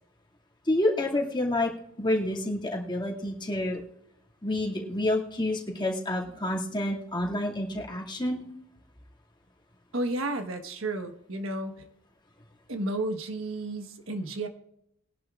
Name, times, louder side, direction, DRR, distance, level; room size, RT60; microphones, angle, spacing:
voice 1, 0.7-1.7 2.0-3.8 4.4-8.4, left 1 dB, 20° left, -2 dB, 2.3 m, -28 dB
voice 2, 9.9-11.9 12.7-14.5, right 2 dB, 85° right, 7 dB, 1.3 m, -32 dB
21.5 x 11.0 x 2.5 m, 0.75 s
head